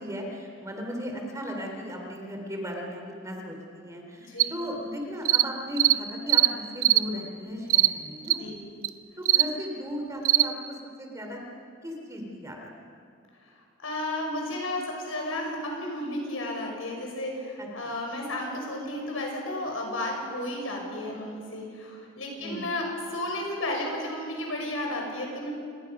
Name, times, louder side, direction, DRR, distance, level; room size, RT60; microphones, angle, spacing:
voice 1, 0.0-8.4 9.2-11.4 11.8-12.7 17.6-17.7 22.4-22.7, equal, 15° right, 1 dB, 3.2 m, -36 dB
voice 2, 4.1-4.5 8.4-8.6 13.4-13.5 13.8-25.5, left 1 dB, 85° left, 1 dB, 5.8 m, -33 dB
sound 1, 4.4-4.5 5.2-5.5 5.8-6.0 6.3-6.5 6.8-7.0 7.7-7.9 8.3-8.4 8.8-8.9 9.2-9.5 10.2-10.5, right 14 dB, 80° right, 0.7 m, -20 dB
28.5 x 19.5 x 6.0 m, 2.4 s
head